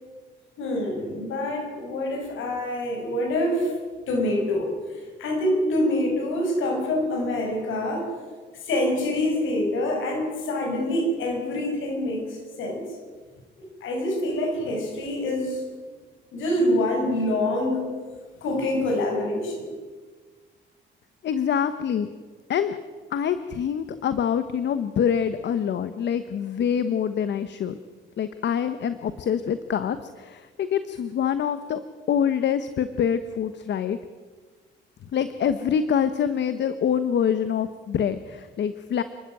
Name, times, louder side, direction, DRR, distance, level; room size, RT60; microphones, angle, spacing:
voice 1, 0.6-3.7 4.1-8.1 8.5-12.8 13.6-15.6 16.3-17.9 18.4-19.7, left 1 dB, 80° left, 3 dB, 6.1 m, -26 dB
voice 2, 21.2-22.1 22.5-22.8 23.1-27.8 28.2-31.8 32.1-34.0 35.1-39.0, left 8 dB, 65° left, 11 dB, 1.1 m, -25 dB
29.5 x 12.5 x 9.1 m, 1.4 s
cardioid pair, 90°, 20 cm